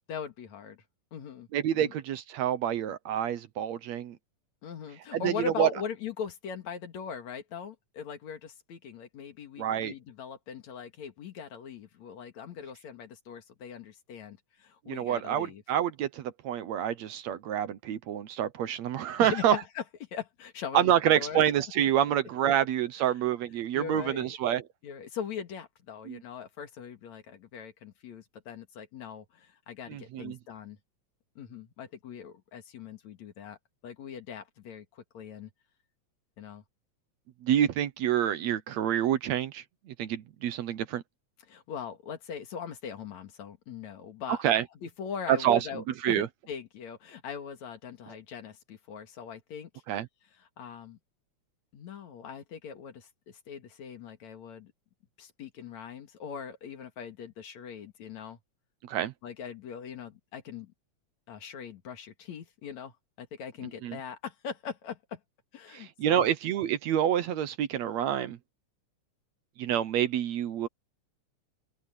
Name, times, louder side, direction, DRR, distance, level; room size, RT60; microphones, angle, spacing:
voice 1, 0.1-0.8 1.1-1.5 1.7-1.9 4.6-15.6 19.2-19.8 20.1-21.4 23.7-24.3 24.8-30.8 31.4-33.6 33.8-35.5 36.4-36.6 41.5-44.4 44.8-49.7 50.6-51.0 51.7-54.7 55.2-58.4 59.2-60.7 61.3-65.2 65.5-66.3, left 7 dB, 65° left, 3.1 m, -41 dB
voice 2, 1.5-4.2 5.1-5.7 9.6-9.9 14.9-19.6 20.7-24.6 26.1-26.2 29.9-30.4 37.4-41.0 44.3-44.7 45.3-46.3 48.1-48.2 49.9-50.1 58.8-59.1 63.8-64.0 65.7-68.4 69.6-70.7, right 10 dB, 70° right, 2.1 m, -27 dB
open air
omnidirectional pair, 3.5 m